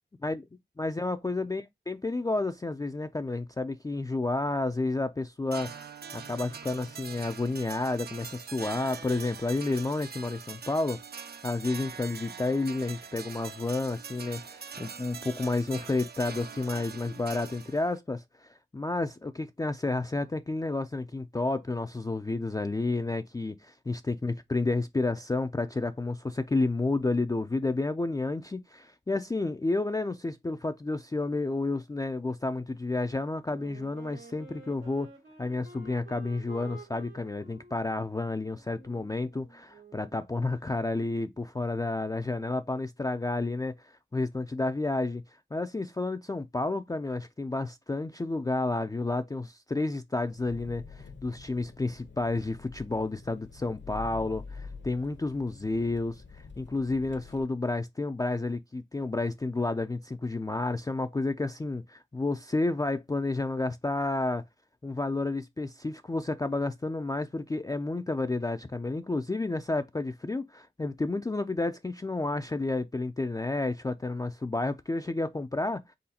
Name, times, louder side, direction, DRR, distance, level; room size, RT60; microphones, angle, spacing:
voice 1, 0.8-5.9 6.1-11.0 11.4-35.1 35.4-45.2 45.5-56.2 56.6-64.4 64.8-75.9, left 2 dB, 20° left, 0.3 m, -31 dB
sound 1, 5.5-18.0, right 6 dB, 55° right, 0.4 m, -43 dB
Wind instrument woodwind instrument, 33.5-40.2, right 3 dB, 90° right, 1.9 m, -51 dB
Engine, 50.3-57.4, left 4 dB, 65° left, 0.8 m, -46 dB
4.0 x 3.9 x 2.8 m
wide cardioid pair, 75°, 20 cm